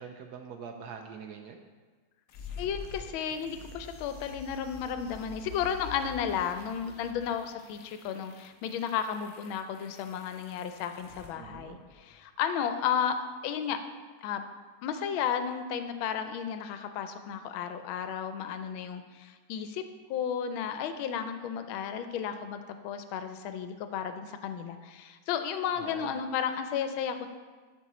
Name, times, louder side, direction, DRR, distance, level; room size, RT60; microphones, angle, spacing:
voice 1, 0.0-1.6 11.4-11.8 25.8-26.2, right 6 dB, 75° right, 5 dB, 0.9 m, -44 dB
sound 1, 2.3-12.3, left 6 dB, 60° left, 0.8 m, -47 dB
voice 2, 2.6-13.8 14.2-14.4 14.8-19.8 20.1-27.3, left 8 dB, 85° left, 9 dB, 1.4 m, -33 dB
11.5 x 4.4 x 4.2 m, 1.4 s
omnidirectional pair, 2.2 m